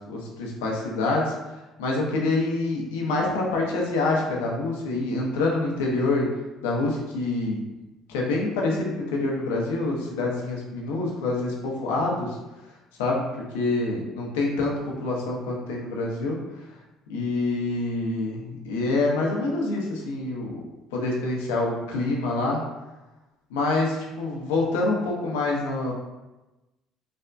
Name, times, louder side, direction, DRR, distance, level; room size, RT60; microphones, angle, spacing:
voice 1, 0.1-6.3 6.6-7.6 8.1-12.4 13.0-16.4 17.1-20.7 20.9-22.6 23.5-25.9, left 2 dB, 85° left, -2 dB, 0.6 m, -26 dB
3.3 x 2.1 x 2.5 m, 1.1 s
supercardioid pair, 70°, 0 cm